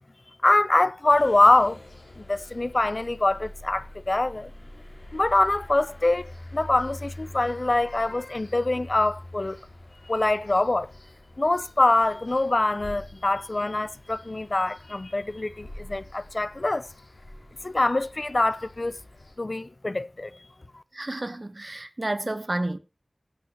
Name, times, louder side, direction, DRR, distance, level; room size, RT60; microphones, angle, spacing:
voice 1, 0.4-1.8 2.3-4.5 5.1-9.6 10.1-10.9 11.4-16.9 17.6-19.0 19.4-20.3, left 2 dB, 55° left, 0.6 m, -24 dB
sound 1, 1.1-19.3, left 1 dB, 90° left, 5.5 m, -45 dB
voice 2, 20.9-22.8, right 2 dB, 50° right, 1.0 m, -30 dB
16.0 x 8.2 x 2.9 m
wide cardioid pair, 40°, 0 cm